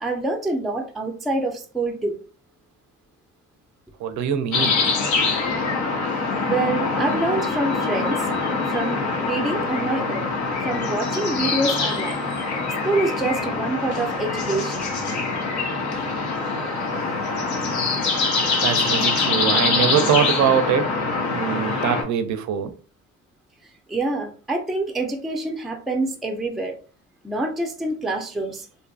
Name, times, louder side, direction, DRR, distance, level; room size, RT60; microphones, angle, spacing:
voice 1, 0.0-2.2 6.5-8.3 8.6-10.3 10.6-12.2 12.8-14.9 17.6-19.0 21.5-21.8 23.9-26.8 27.2-28.7, right 2 dB, ahead, 0.4 m, -26 dB
voice 2, 4.0-4.8 18.6-20.9 21.3-22.7, right 8 dB, 70° right, 0.5 m, -23 dB
sound 1, 4.5-22.0, left 4 dB, 70° left, 0.8 m, -24 dB
2.6 x 2.5 x 2.3 m
cardioid pair, 90°, 30 cm